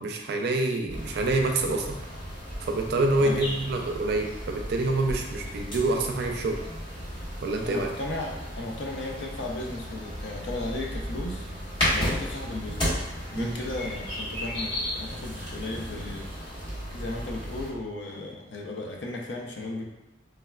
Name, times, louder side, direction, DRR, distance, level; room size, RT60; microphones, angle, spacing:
voice 1, 0.0-2.0 2.6-6.6 7.4-7.9 13.3-13.6, right 2 dB, 60° right, 3 dB, 0.4 m, -27 dB
sound 1, 0.9-17.7, equal, 30° left, 1.0 m, -34 dB
voice 2, 7.6-11.5 11.9-12.9 13.3-16.3 16.9-19.8, left 2 dB, 70° left, 0 dB, 0.5 m, -35 dB
3.3 x 2.1 x 2.3 m, 0.97 s
head